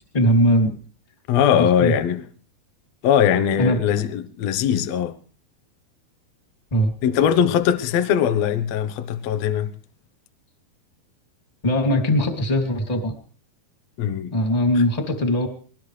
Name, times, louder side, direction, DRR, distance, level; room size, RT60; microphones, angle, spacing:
voice 1, 0.1-0.7 1.6-1.9 3.6-3.8 6.7-6.9 11.6-13.1 14.3-15.5, equal, 10° left, 2.3 m, -20 dB
voice 2, 1.3-2.2 3.0-5.2 7.0-9.7 14.0-14.3 14.8-14.9, left 9 dB, 70° left, 1.6 m, -20 dB
22.0 x 19.0 x 3.3 m
omnidirectional pair, 4.5 m